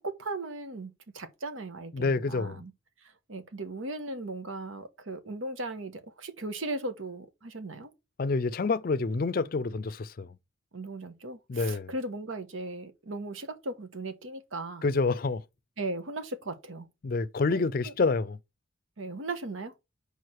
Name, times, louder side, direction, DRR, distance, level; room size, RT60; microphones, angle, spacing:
voice 1, 0.0-2.7 3.3-7.9 10.7-14.9 15.8-16.9 17.5-17.6 17.8-17.9 19.0-19.7, right 2 dB, 85° right, 1.1 m, -37 dB
voice 2, 1.9-2.6 8.2-10.4 11.5-11.9 14.8-15.4 17.0-18.4, left 3 dB, 45° left, 0.4 m, -28 dB
5.0 x 4.7 x 6.2 m
head